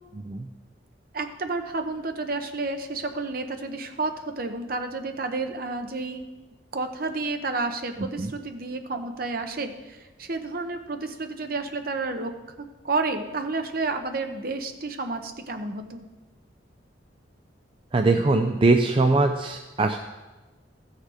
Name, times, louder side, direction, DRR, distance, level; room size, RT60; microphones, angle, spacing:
voice 1, 1.1-6.3 6.7-12.3 12.8-16.0, right 3 dB, 50° right, 6 dB, 0.9 m, -30 dB
voice 2, 17.9-20.0, right 3 dB, 30° right, 5 dB, 0.4 m, -21 dB
14.5 x 6.5 x 4.9 m, 1.2 s
head